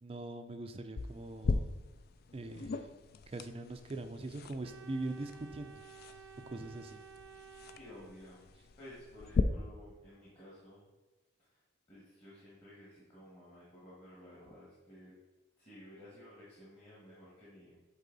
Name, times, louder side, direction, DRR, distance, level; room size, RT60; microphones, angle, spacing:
voice 1, 0.0-1.7 2.3-2.9 3.3-5.8 6.5-7.0, right 2 dB, 30° right, 6 dB, 0.4 m, -42 dB
sound 1, 1.0-9.4, left 4 dB, 50° left, 0.3 m, -39 dB
Organ, 4.6-8.6, right 6 dB, 80° right, 0.5 m, -54 dB
voice 2, 7.7-8.5 8.8-10.9 11.5-11.6 11.9-15.1 15.6-17.8, left 1 dB, 30° left, -8 dB, 1.7 m, -54 dB
8.2 x 4.1 x 4.0 m, 1.1 s
head